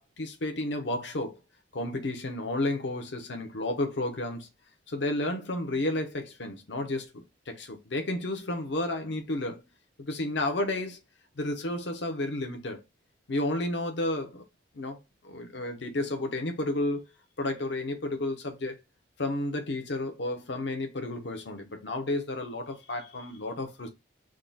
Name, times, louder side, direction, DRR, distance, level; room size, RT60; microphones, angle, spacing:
voice 1, 0.0-1.4 1.7-4.5 4.9-9.6 10.1-11.0 11.4-12.8 13.3-14.4 14.7-15.0 15.2-17.0 17.4-18.8 19.2-23.9, left 2 dB, 70° left, 0.8 m, -32 dB
3.6 x 2.3 x 3.9 m
head